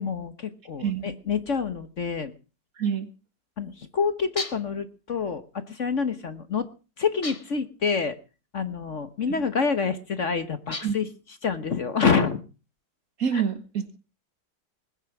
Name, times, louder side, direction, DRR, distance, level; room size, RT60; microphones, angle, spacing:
voice 1, 0.0-2.3 3.6-6.7 7.0-8.2 8.5-11.1 11.4-12.4 13.3-13.4, left 5 dB, 45° left, 11 dB, 1.4 m, -27 dB
voice 2, 2.8-3.1 9.3-9.4 10.8-11.0 13.2-14.0, right 7 dB, 55° right, 10 dB, 2.0 m, -27 dB
sound 1, 4.4-4.8 7.2-7.7 10.7-11.2, left 2 dB, 20° left, 1.4 m, -36 dB
20.5 x 9.9 x 6.0 m, 0.35 s
omnidirectional pair, 1.9 m